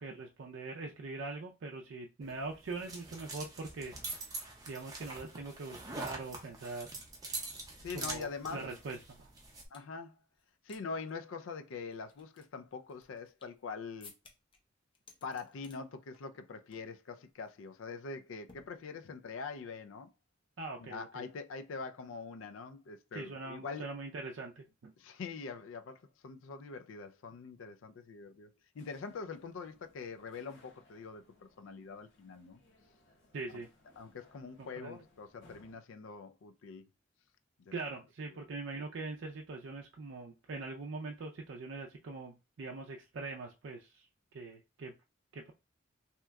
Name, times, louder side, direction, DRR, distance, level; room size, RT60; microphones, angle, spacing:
voice 1, 0.0-3.9 4.2-4.4 4.7-6.9 7.9-9.3 20.6-21.2 23.1-24.9 33.3-33.7 34.6-35.0 37.7-44.1 44.3-44.9 45.3-45.5, right 3 dB, 70° right, 0.4 m, -42 dB
sound 1, 2.2-9.7, right 2 dB, 20° right, 0.6 m, -44 dB
voice 2, 7.8-8.7 9.7-10.1 10.6-14.1 15.2-20.1 20.8-23.8 25.0-28.5 28.7-32.6 34.0-36.9 37.6-37.7, left 4 dB, 80° left, 0.4 m, -44 dB
sound 2, 8.4-9.9 10.3-10.8 11.1-11.2 11.7-13.6 14.0-14.6 14.9-15.8 16.1-16.4 16.7-17.0 17.3-17.5 18.5-19.2, left 4 dB, 25° left, 0.5 m, -60 dB
sound 3, 28.7-35.8, left 2 dB, 65° left, 0.9 m, -65 dB
2.8 x 2.2 x 3.4 m
head